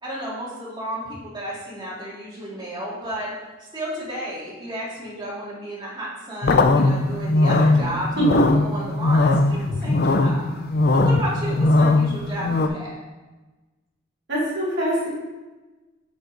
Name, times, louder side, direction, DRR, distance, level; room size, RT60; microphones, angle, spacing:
voice 1, 0.0-3.3 3.7-10.4 10.9-13.0, right 1 dB, 20° right, -7 dB, 2.2 m, -32 dB
sound 1, 6.4-12.7, left 2 dB, 50° left, 0.5 m, -19 dB
voice 2, 14.3-15.1, right 1 dB, 55° right, -6 dB, 2.0 m, -22 dB
7.8 x 5.5 x 3.9 m, 1.2 s
head